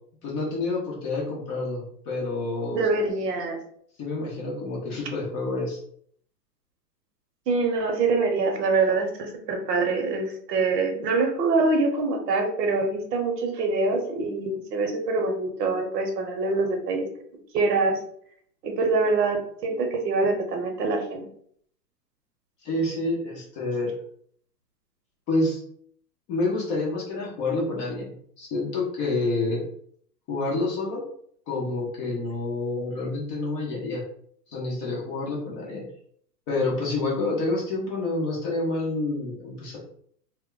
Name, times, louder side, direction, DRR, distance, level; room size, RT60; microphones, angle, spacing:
voice 1, 0.2-2.8 4.0-5.8 22.6-23.9 25.3-25.6 26.3-29.6 30.3-31.0 31.5-34.0 34.5-35.8 36.5-39.8, left 2 dB, 20° left, -4 dB, 0.5 m, -28 dB
voice 2, 2.7-3.6 7.5-17.1 17.5-18.0 18.6-21.3, right 3 dB, 75° right, 4 dB, 0.9 m, -24 dB
2.2 x 2.1 x 3.6 m, 0.63 s
hypercardioid pair, 130°, 50 cm